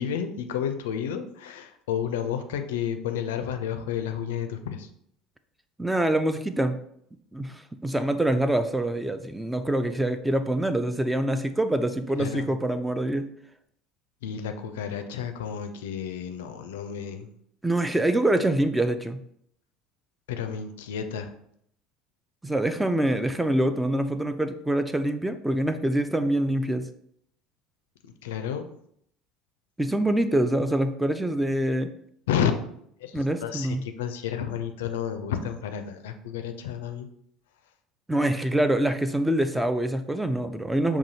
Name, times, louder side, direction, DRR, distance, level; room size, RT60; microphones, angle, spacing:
voice 1, 0.0-4.9 12.2-12.5 14.2-17.3 20.3-21.3 28.2-28.7 32.3-32.5 33.0-37.1, left 8 dB, 70° left, 7 dB, 0.4 m, -31 dB
voice 2, 5.8-6.8 7.3-13.3 17.6-19.2 22.4-26.9 29.8-31.9 33.1-33.8 38.1-41.0, right 1 dB, 5° right, 10 dB, 0.3 m, -25 dB
5.9 x 2.3 x 2.7 m, 0.70 s
figure-of-eight pair, 65°, 0 cm